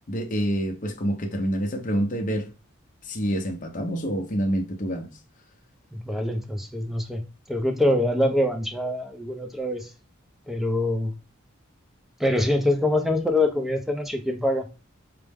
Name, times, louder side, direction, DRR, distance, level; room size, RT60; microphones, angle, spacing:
voice 1, 0.1-2.5 3.0-5.1, equal, 40° left, 0.6 m, -27 dB
voice 2, 5.9-7.2 7.5-9.9 10.5-11.1 12.2-14.7, left 1 dB, ahead, 0.5 m, -24 dB
4.6 x 2.0 x 3.4 m
head